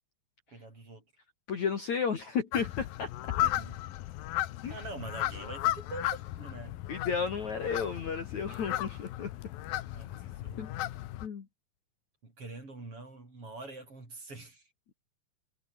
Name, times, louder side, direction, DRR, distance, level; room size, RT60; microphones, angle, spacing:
voice 1, 0.5-1.0 3.4-3.8 4.7-6.8 9.9-10.7 12.2-14.7, right 2 dB, 30° right, 7.3 m, -45 dB
voice 2, 1.5-3.1 4.6-4.7 6.9-9.3 10.6-10.7 11.2-11.5, left 6 dB, 45° left, 3.2 m, -33 dB
sound 1, 2.5-11.3, left 14 dB, 70° left, 2.6 m, -35 dB
omnidirectional pair, 5.0 m